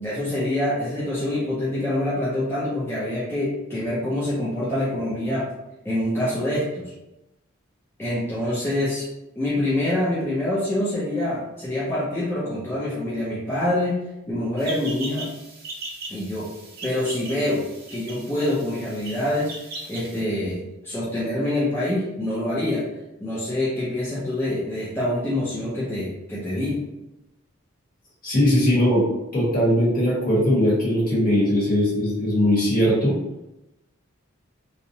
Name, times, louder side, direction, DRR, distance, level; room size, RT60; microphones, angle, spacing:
voice 1, 0.0-5.5 5.8-6.9 8.0-9.0 9.4-14.0 14.3-15.3 16.1-16.5 16.8-17.7 17.9-19.5 19.9-22.8 23.2-26.8, left 1 dB, 10° left, -9 dB, 0.4 m, -25 dB
sound 1, 14.6-20.2, right 2 dB, 45° right, 0.6 m, -39 dB
voice 2, 28.2-29.0 29.3-33.1, equal, 40° left, -6 dB, 1.0 m, -20 dB
2.5 x 2.0 x 2.6 m, 0.94 s
head